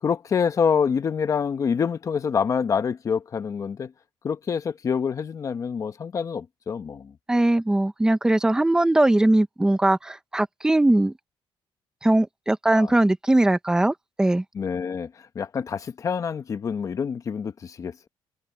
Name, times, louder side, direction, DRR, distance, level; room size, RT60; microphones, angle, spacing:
voice 1, 0.0-3.9 4.2-7.1 12.7-13.0 14.5-18.1, left 6 dB, 35° left, 1.0 m, -26 dB
voice 2, 7.3-11.1 12.0-14.4, right 1 dB, 5° right, 0.9 m, -20 dB
cardioid pair, 165°, 9 cm